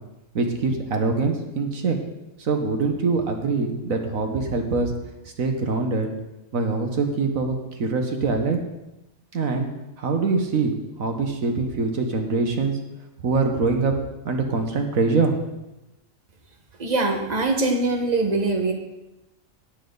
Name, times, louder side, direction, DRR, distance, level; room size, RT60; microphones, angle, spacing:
voice 1, 0.3-2.0 2.4-4.9 5.4-6.1 6.5-8.6 9.3-9.7 10.0-10.7 11.0-12.8 13.2-13.9 14.2-15.4, right 4 dB, 80° right, 4 dB, 1.6 m, -23 dB
voice 2, 16.8-18.7, right 2 dB, 30° right, 2 dB, 1.5 m, -22 dB
17.0 x 7.5 x 4.0 m, 0.95 s
omnidirectional pair, 1.4 m